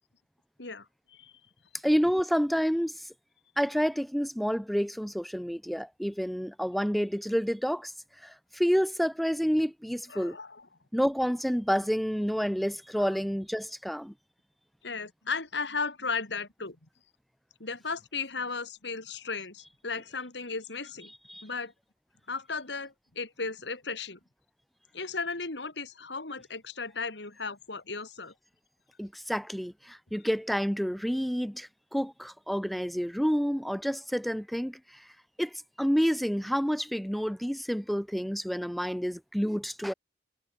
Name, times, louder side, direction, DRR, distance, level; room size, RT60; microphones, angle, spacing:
voice 1, 0.6-1.3 10.1-10.7 13.0-13.1 14.8-16.8 17.6-21.1 21.4-21.7 22.3-24.2 24.9-28.3, left 4 dB, 75° left, 3.1 m, -35 dB
voice 2, 1.8-3.1 3.6-7.9 8.2-10.4 10.9-14.1 21.3-21.4 29.0-35.1 35.4-39.9, equal, ahead, 0.4 m, -29 dB
head